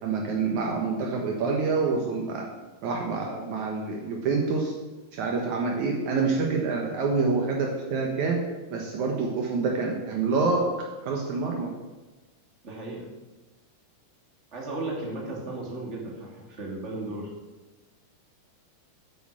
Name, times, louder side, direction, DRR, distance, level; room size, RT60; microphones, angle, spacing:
voice 1, 0.0-2.4 2.8-4.7 5.1-8.4 8.7-10.6 11.0-11.7, right 4 dB, 65° right, 1 dB, 2.5 m, -27 dB
voice 2, 12.6-13.1 14.5-17.3, right 2 dB, 20° right, -2 dB, 2.7 m, -35 dB
9.7 x 8.2 x 7.5 m, 1.2 s
omnidirectional pair, 3.8 m